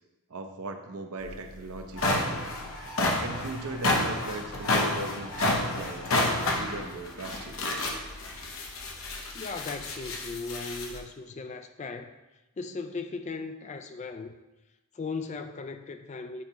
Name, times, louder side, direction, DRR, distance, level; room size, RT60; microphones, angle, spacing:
voice 1, 0.3-2.5 3.2-6.1 6.5-7.8, right 2 dB, 80° right, 5 dB, 0.7 m, -38 dB
sound 1, 1.2-1.3 1.8-11.0, left 2 dB, 60° left, 0.8 m, -30 dB
voice 2, 9.3-12.1 12.6-14.3 14.9-16.4, left 4 dB, 30° left, 8 dB, 0.3 m, -37 dB
8.4 x 4.5 x 3.0 m, 1.0 s
head